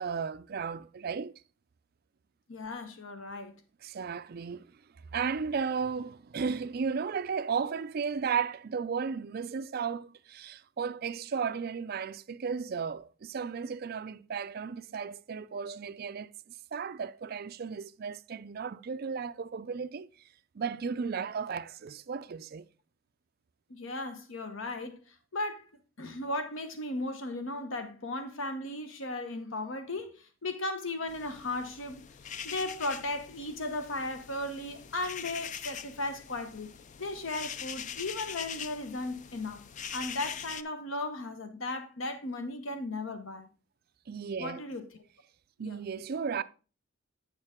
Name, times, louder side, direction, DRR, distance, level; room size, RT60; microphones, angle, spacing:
voice 1, 0.0-1.3 3.8-4.8 5.1-20.1 20.5-22.7 44.1-44.6 45.6-46.4, right 6 dB, 50° right, 0.4 m, -34 dB
voice 2, 2.5-3.6 23.7-25.6 26.0-32.0 32.4-36.7 37.0-39.7 39.9-43.5 44.4-45.0 45.6-45.8, left 2 dB, 70° left, 1.0 m, -36 dB
sound 1, 31.1-40.6, left 8 dB, 35° left, 0.4 m, -43 dB
8.8 x 6.6 x 3.6 m
head